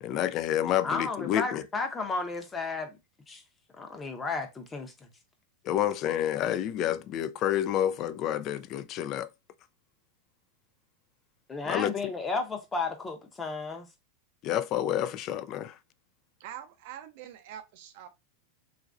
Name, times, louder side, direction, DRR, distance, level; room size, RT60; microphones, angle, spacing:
voice 1, 0.0-1.6 5.6-9.3 11.6-11.9 14.4-15.8, left 11 dB, 45° left, 0.3 m, -29 dB
voice 2, 0.8-3.0 3.3-3.4 3.7-5.1 11.5-13.9, left 4 dB, 20° left, 0.7 m, -33 dB
voice 3, 16.4-18.1, right 10 dB, 60° right, 0.6 m, -44 dB
3.0 x 2.5 x 2.4 m
hypercardioid pair, 110°, 0 cm